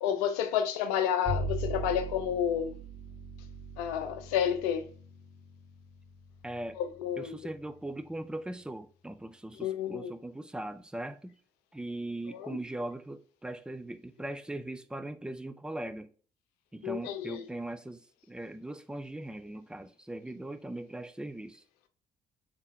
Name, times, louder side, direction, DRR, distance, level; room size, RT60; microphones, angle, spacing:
voice 1, 0.0-2.8 3.8-4.9 6.8-7.4 9.6-10.1 12.4-12.5 16.8-17.4, left 9 dB, 75° left, 0.5 m, -30 dB
Bowed string instrument, 1.2-7.7, right 2 dB, 30° right, 1.9 m, -40 dB
voice 2, 6.4-6.8 7.2-11.4 11.7-16.1 16.7-21.6, right 1 dB, 5° right, 0.4 m, -40 dB
3.6 x 3.4 x 2.6 m
figure-of-eight pair, 45°, 20 cm